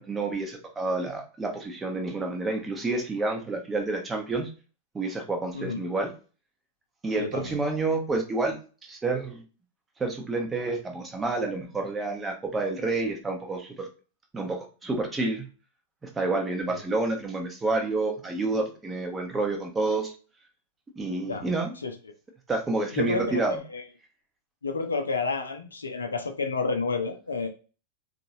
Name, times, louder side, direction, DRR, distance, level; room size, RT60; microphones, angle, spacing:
voice 1, 0.0-4.5 4.9-6.1 7.0-9.4 10.0-13.9 14.3-15.5 16.2-20.1 21.0-21.7 22.5-23.6, right 3 dB, 15° right, 3 dB, 0.8 m, -29 dB
voice 2, 7.2-7.5 21.3-21.5 21.8-21.9 23.0-23.4 23.7-23.8 24.6-27.5, left 4 dB, 75° left, 5 dB, 0.5 m, -30 dB
3.9 x 2.5 x 2.7 m, 0.36 s
figure-of-eight pair, 90°, 0 cm